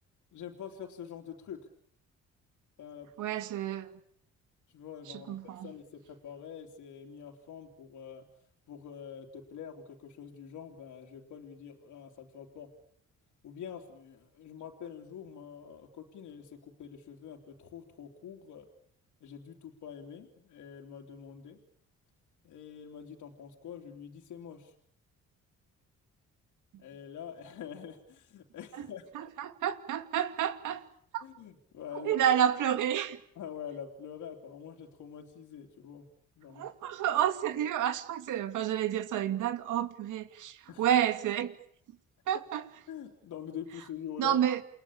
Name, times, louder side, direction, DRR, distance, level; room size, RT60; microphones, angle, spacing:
voice 1, 0.3-1.7 2.8-3.4 4.7-8.3 8.7-12.7 13.4-18.7 19.2-21.6 22.4-24.7 26.8-29.3 31.2-32.2 33.3-36.1 36.4-36.6 40.7-40.9 42.9-44.4, left 8 dB, 75° left, 3.3 m, -45 dB
voice 2, 3.2-3.9 5.1-5.7 28.7-28.9 29.1-30.9 31.1-31.2 31.9-33.2 36.5-41.6 42.3-42.7 44.2-44.6, right 10 dB, 80° right, 2.6 m, -30 dB
29.0 x 21.5 x 8.7 m
cardioid pair, 90°, 30 cm